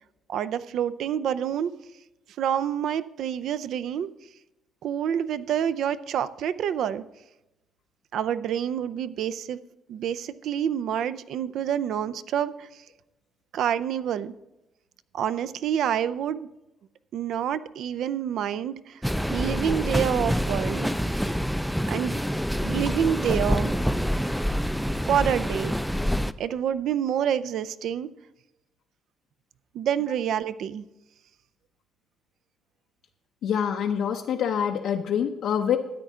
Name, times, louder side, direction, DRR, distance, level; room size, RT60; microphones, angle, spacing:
voice 1, 0.3-1.7 2.4-4.1 4.8-7.0 8.1-9.6 9.9-12.5 13.5-14.3 15.1-16.5 17.1-19.0 19.3-20.9 21.9-22.2 22.6-23.8 25.1-25.7 26.4-28.1 29.7-30.8, right 9 dB, 70° right, 13 dB, 0.4 m, -27 dB
sound 1, 19.0-26.3, equal, ahead, 0.3 m, -26 dB
voice 2, 33.4-35.8, left 8 dB, 70° left, 3 dB, 0.6 m, -25 dB
13.0 x 9.1 x 3.6 m, 0.94 s
cardioid pair, 120°, 0 cm